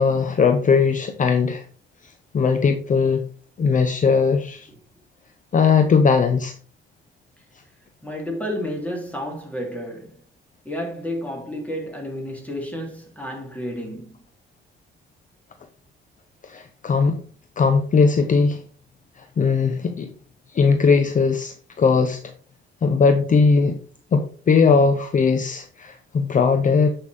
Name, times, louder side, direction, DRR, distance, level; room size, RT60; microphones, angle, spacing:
voice 1, 0.0-1.6 2.3-3.2 3.6-4.7 5.5-6.5 16.4-17.2 17.6-18.6 19.2-20.1 20.5-22.2 22.8-23.8 24.1-26.9, left 5 dB, 40° left, 0.8 m, -19 dB
voice 2, 8.0-10.2 10.6-14.2, equal, 5° left, 3.0 m, -31 dB
8.1 x 5.6 x 3.5 m
cardioid pair, 90°, 20 cm